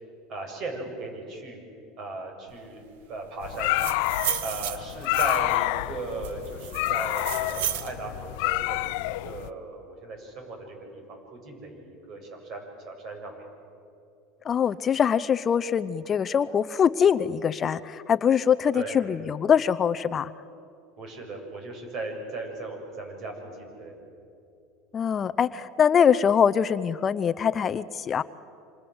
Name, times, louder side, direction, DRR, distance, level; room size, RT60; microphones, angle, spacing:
voice 1, 0.3-1.6 2.0-3.9 4.4-13.5 18.7-19.0 21.0-24.0, right 2 dB, 45° right, 3 dB, 7.7 m, -37 dB
sound 1, 3.4-9.5, left 19 dB, 70° left, 0.8 m, -28 dB
sound 2, 3.5-5.6 6.2-7.9, right 11 dB, 85° right, 1.5 m, -33 dB
voice 2, 14.4-20.3 24.9-28.2, left 7 dB, 30° left, 13 dB, 0.7 m, -23 dB
28.0 x 26.5 x 8.0 m, 2.6 s
supercardioid pair, 135°, 0 cm